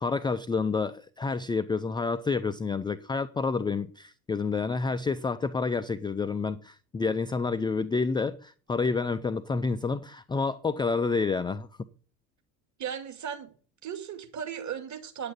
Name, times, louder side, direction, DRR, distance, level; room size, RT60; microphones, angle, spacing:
voice 1, 0.0-11.7, left 4 dB, 10° left, 0.5 m, -29 dB
voice 2, 12.8-13.5 13.8-15.3, right 8 dB, 35° right, 2.4 m, -36 dB
9.5 x 8.5 x 8.4 m
figure-of-eight pair, 60°, 49 cm